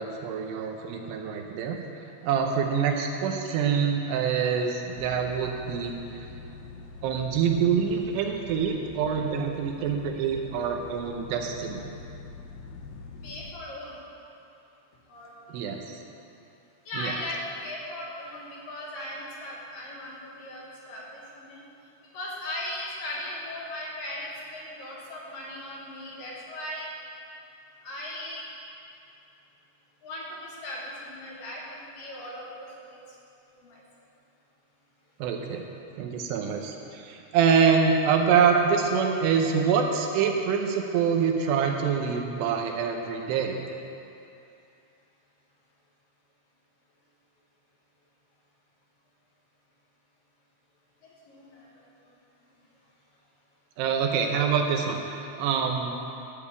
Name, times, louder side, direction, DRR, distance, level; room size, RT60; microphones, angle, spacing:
voice 1, 0.0-1.8 2.2-6.2 7.0-11.9 15.5-16.0 17.0-17.1 35.2-35.6 36.0-43.6 53.8-56.0, right 6 dB, 80° right, 3 dB, 2.8 m, -25 dB
sound 1, 5.0-13.5, left 4 dB, 80° left, 2.9 m, -44 dB
voice 2, 13.2-14.0 15.1-15.3 16.9-21.6 22.1-26.9 27.8-28.4 30.0-33.0 33.6-33.8 51.3-51.7, left 1 dB, 65° left, -5 dB, 2.5 m, -38 dB
12.5 x 5.3 x 8.4 m, 2.7 s
omnidirectional pair, 5.0 m